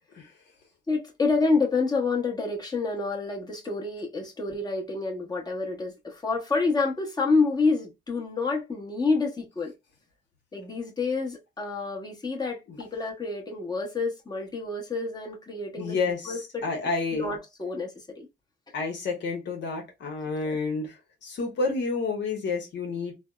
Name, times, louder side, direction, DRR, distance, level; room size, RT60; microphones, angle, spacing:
voice 1, 0.9-9.7 10.5-16.0 16.2-16.6 17.1-17.9 18.2-18.3 20.4-20.6, left 4 dB, 20° left, 1.0 m, -28 dB
voice 2, 15.8-16.3 16.6-17.3 18.7-21.0 21.2-23.1, left 4 dB, 60° left, 0.9 m, -29 dB
3.3 x 2.0 x 2.3 m
cardioid pair, 90°, 20 cm